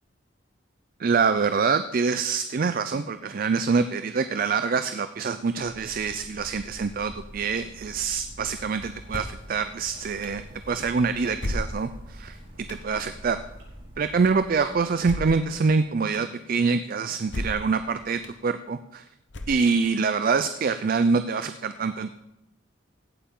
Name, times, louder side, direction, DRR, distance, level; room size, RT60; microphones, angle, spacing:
voice 1, 1.0-10.4 10.7-12.4 12.7-13.4 14.0-19.0 19.5-22.1, right 5 dB, 45° right, 11 dB, 0.4 m, -25 dB
sound 1, 5.6-14.9, equal, 65° right, 5.2 m, -45 dB
sound 2, 9.1-9.5 10.2-10.3 11.4-12.1 12.7-12.8 15.0-15.5 16.1-16.2 17.3-17.7 18.2-18.3 19.3-19.9, left 1 dB, 65° left, 0.9 m, -33 dB
16.0 x 8.6 x 3.8 m, 0.88 s
head